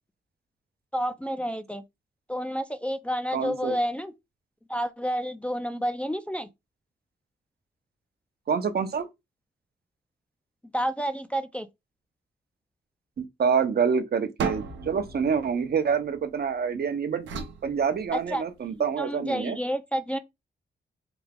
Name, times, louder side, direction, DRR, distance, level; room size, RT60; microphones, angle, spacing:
voice 1, 0.9-1.8 2.3-4.1 4.7-6.5 10.7-11.7 18.1-18.4 19.0-20.2, equal, 5° left, 0.4 m, -29 dB
voice 2, 3.3-3.8 8.5-9.1 13.2-17.3 17.6-19.6, right 6 dB, 55° right, 0.8 m, -27 dB
sound 1, 14.4-16.6 17.3-18.6, right 5 dB, 85° right, 0.8 m, -36 dB
3.5 x 2.4 x 3.4 m
cardioid pair, 65°, 19 cm